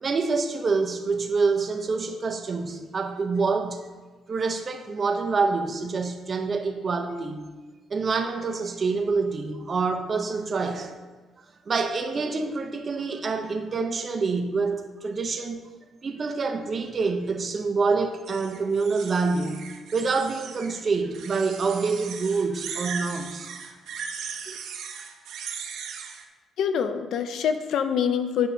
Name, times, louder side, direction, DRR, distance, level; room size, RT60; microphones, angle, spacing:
voice 1, 0.0-3.9 4.3-7.4 7.9-10.9 11.7-15.6 16.0-19.6 19.9-23.5 24.5-24.6, right 4 dB, 40° right, 0.8 m, -26 dB
sound 1, 18.2-20.8 21.1-26.2, right 6 dB, 80° right, 0.7 m, -38 dB
voice 2, 26.6-28.5, left 7 dB, 75° left, 0.5 m, -25 dB
10.0 x 5.5 x 2.8 m
cardioid pair, 90°, 0 cm